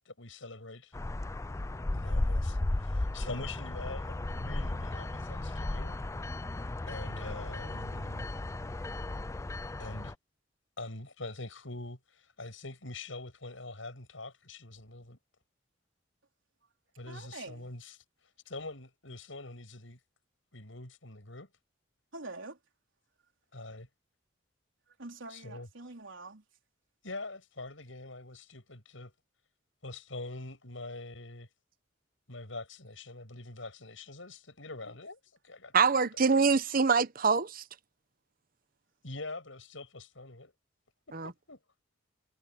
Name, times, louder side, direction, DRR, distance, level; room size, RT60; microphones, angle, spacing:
voice 1, 0.0-0.9 1.9-6.0 6.9-8.3 9.8-10.1 10.8-15.2 17.0-18.0 18.4-20.0 20.5-21.5 23.5-23.9 25.3-25.7 27.0-29.1 29.8-31.5 32.3-35.7 39.0-40.5 41.2-41.6, left 2 dB, 80° left, 6.6 m, -44 dB
sound 1, 0.9-10.1, left 2 dB, 15° left, 0.4 m, -35 dB
voice 2, 17.1-17.7 22.1-22.6 25.0-26.4, right 2 dB, 75° right, 3.9 m, -45 dB
voice 3, 35.7-37.6 41.1-41.3, right 5 dB, 45° right, 0.9 m, -25 dB
head